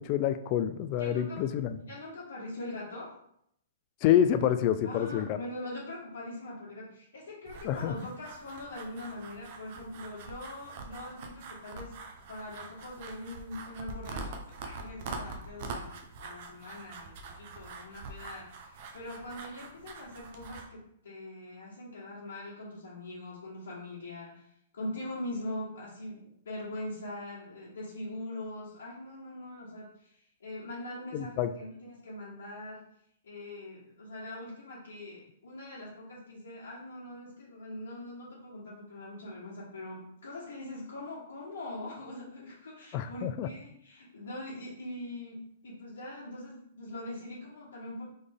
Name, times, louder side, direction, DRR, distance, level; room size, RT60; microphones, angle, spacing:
voice 1, 0.0-1.8 4.0-5.4 7.6-7.9 31.1-31.5 42.9-43.5, left 10 dB, 40° left, 10 dB, 0.3 m, -27 dB
voice 2, 1.0-1.4 1.8-3.2 4.8-11.9 12.3-32.8 33.2-48.0, left 1 dB, 75° left, -9 dB, 1.4 m, -42 dB
sound 1, 7.5-20.7, right 3 dB, 50° right, 0.7 m, -44 dB
3.9 x 3.3 x 3.5 m, 0.71 s
hypercardioid pair, 130°, 0 cm